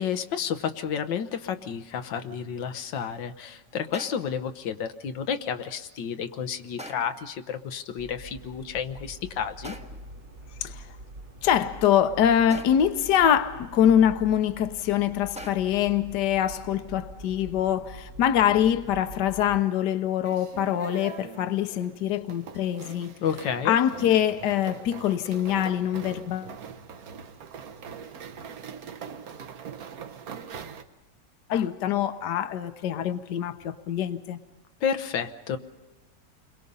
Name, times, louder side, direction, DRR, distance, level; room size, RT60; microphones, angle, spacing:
voice 1, 0.0-9.8 23.2-23.8 34.8-35.6, left 7 dB, 90° left, 1.6 m, -31 dB
sound 1, 3.9-4.4 6.8-7.3 9.6-10.2 12.5-13.1 15.4-15.9, equal, 5° right, 0.8 m, -43 dB
sound 2, 8.0-19.6, right 1 dB, 85° right, 3.1 m, -45 dB
voice 2, 11.4-23.1 23.6-26.5 31.5-34.4, left 10 dB, 75° left, 1.5 m, -24 dB
sound 3, 20.2-30.8, right 7 dB, 60° right, 1.4 m, -42 dB
29.5 x 22.5 x 5.4 m
omnidirectional pair, 1.9 m